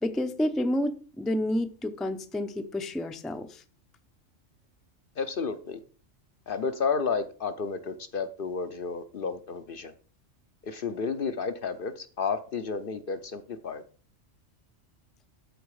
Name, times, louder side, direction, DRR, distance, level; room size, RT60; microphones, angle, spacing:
voice 1, 0.0-3.6, left 1 dB, ahead, 0.5 m, -29 dB
voice 2, 5.2-5.8 6.5-9.9 10.6-13.8, left 5 dB, 55° left, 0.7 m, -31 dB
13.0 x 4.6 x 4.8 m
omnidirectional pair, 1.3 m